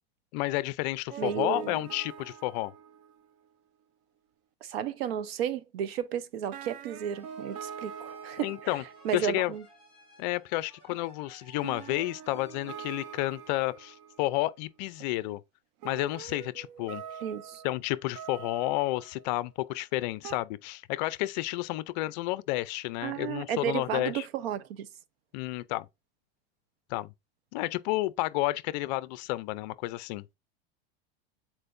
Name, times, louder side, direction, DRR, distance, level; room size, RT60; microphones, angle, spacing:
voice 1, 0.3-2.7 8.4-8.8 9.1-9.5 10.2-15.4 15.8-17.0 17.6-24.2 25.3-25.9 26.9-27.1 27.5-30.2, left 18 dB, 45° left, 0.5 m, -31 dB
sound 1, 1.1-3.3 6.2-6.3 6.5-9.6 10.9-11.0 11.6-14.5 15.0-15.1 15.8-19.4 20.2-20.4, right 8 dB, 45° right, 0.5 m, -44 dB
voice 2, 1.2-1.8 4.6-9.6 17.2-17.6 23.0-24.9, right 9 dB, 75° right, 0.8 m, -33 dB
sound 2, 7.1-14.5, equal, 20° right, 4.1 m, -59 dB
8.7 x 4.4 x 2.6 m
supercardioid pair, 160°, 30 cm